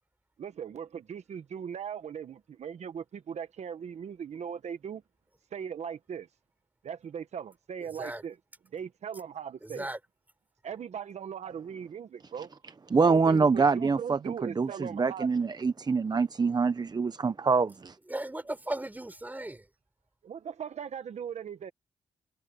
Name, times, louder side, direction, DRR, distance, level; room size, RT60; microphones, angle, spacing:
voice 1, 0.4-5.0 5.5-6.3 6.8-8.4 8.7-9.9 10.6-12.5 13.0-15.3 20.2-21.7, right 7 dB, 65° right, 1.3 m, -39 dB
voice 2, 9.6-10.0 18.1-19.6, right 1 dB, 15° right, 4.2 m, -36 dB
voice 3, 12.9-18.0, right 4 dB, 35° right, 0.8 m, -25 dB
cardioid pair, 70°, 12 cm